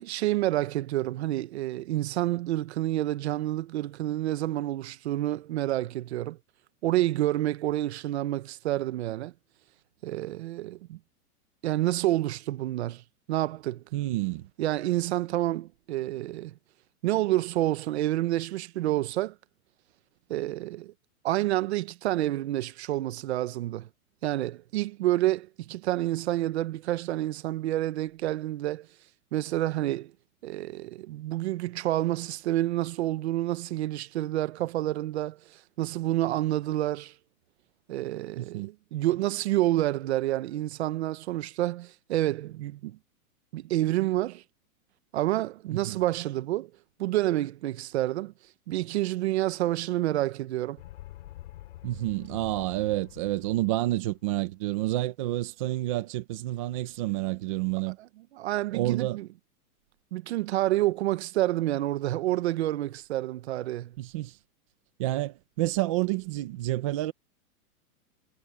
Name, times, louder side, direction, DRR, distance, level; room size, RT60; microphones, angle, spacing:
voice 1, 0.0-6.4 6.8-9.3 10.0-11.0 11.6-13.0 13.3-13.8 14.6-16.5 17.0-19.3 20.3-20.9 21.2-23.9 24.2-28.9 29.3-30.1 30.4-37.1 37.9-43.0 43.5-44.4 45.1-46.7 47.0-48.3 48.7-50.8 58.3-59.3 60.1-63.9, right 15 dB, 45° right, 1.0 m, -28 dB
voice 2, 13.9-14.5 38.4-38.7 45.7-46.0 51.8-58.0 58.7-59.2 64.0-64.4 65.0-67.1, right 16 dB, 20° right, 0.6 m, -29 dB
sound 1, 50.8-54.3, left 14 dB, 55° left, 4.1 m, -47 dB
supercardioid pair, 170°, 45 cm